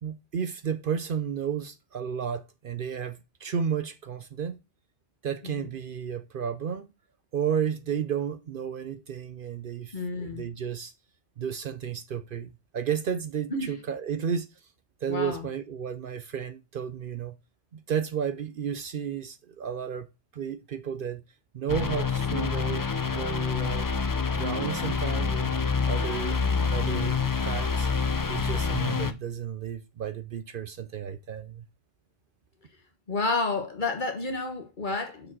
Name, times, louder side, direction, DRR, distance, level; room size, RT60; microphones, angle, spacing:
voice 1, 0.0-4.6 5.2-6.9 7.3-10.9 11.4-14.5 15.0-17.4 17.7-20.1 20.3-21.2 21.5-23.9 24.3-25.6 25.9-26.4 26.7-27.2 27.4-27.9 28.3-31.6, right 7 dB, 60° right, 0.7 m, -32 dB
voice 2, 9.9-10.4 13.5-13.8 15.1-15.5 26.4-26.9 33.1-35.3, left 3 dB, 45° left, 1.5 m, -31 dB
sound 1, 21.7-29.1, left 5 dB, 30° left, 0.4 m, -27 dB
6.2 x 5.0 x 6.1 m
omnidirectional pair, 1.1 m